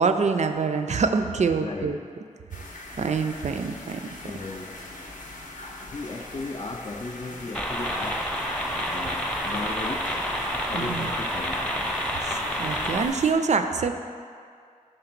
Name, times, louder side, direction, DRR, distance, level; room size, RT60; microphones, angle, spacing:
voice 1, 0.0-2.0 3.0-4.0 10.7-11.1 12.2-14.0, right 5 dB, 60° right, 7 dB, 0.4 m, -25 dB
voice 2, 1.5-1.9 4.2-4.9 5.9-8.3 8.8-10.1 10.7-11.7, left 3 dB, 40° left, -1 dB, 0.4 m, -36 dB
sound 1, 2.5-13.3, left 2 dB, 75° left, 0.7 m, -42 dB
sound 2, 7.5-13.1, equal, 5° left, 0.7 m, -29 dB
5.2 x 3.9 x 5.8 m, 2.2 s
wide cardioid pair, 65°, 13 cm